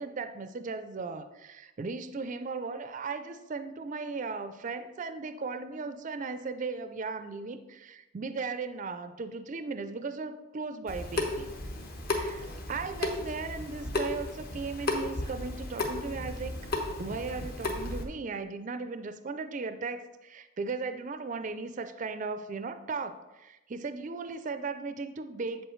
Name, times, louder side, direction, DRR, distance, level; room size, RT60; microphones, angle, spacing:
voice 1, 0.0-11.5 12.1-16.6 17.0-25.6, right 4 dB, 35° right, 10 dB, 0.4 m, -37 dB
Water tap faucet / Sink (filling or washing) / Drip, 10.9-18.0, left 2 dB, 45° left, 1.0 m, -34 dB
7.9 x 7.8 x 3.1 m, 1.0 s
head